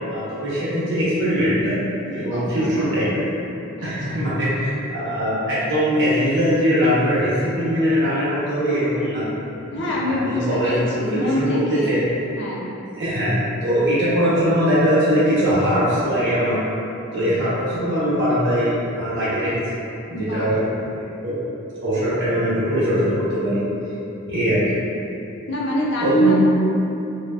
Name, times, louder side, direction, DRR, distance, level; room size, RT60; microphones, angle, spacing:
voice 1, 0.1-1.8 2.0-3.2 3.8-9.3 9.7-10.8 11.1-12.0 12.9-13.3 13.6-16.6 17.1-19.8 20.1-20.7 21.2-21.4 21.8-23.6 24.3-24.6 26.0-26.3, equal, 55° right, -11 dB, 1.0 m, -21 dB
voice 2, 2.3-2.8 3.8-4.2 9.7-12.0 12.4-12.7 20.1-20.5 25.5-26.4, equal, 55° left, -5 dB, 0.5 m, -24 dB
3.2 x 2.2 x 2.4 m, 2.9 s
head